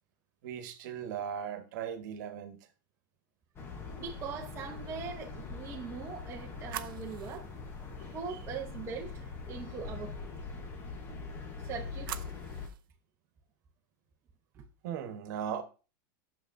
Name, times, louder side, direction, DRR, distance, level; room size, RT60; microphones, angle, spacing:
voice 1, 0.4-2.6 14.8-15.6, right 8 dB, 60° right, 1.3 m, -38 dB
sound 1, 3.6-12.7, left 4 dB, 20° left, 1.1 m, -43 dB
voice 2, 4.0-7.5 8.1-10.1 11.6-12.4 14.5-14.6, right 6 dB, 25° right, 0.8 m, -41 dB
sound 2, 5.9-9.0 11.4-12.9, right 13 dB, 80° right, 0.6 m, -47 dB
9.0 x 6.6 x 2.6 m
supercardioid pair, 150°, 11 cm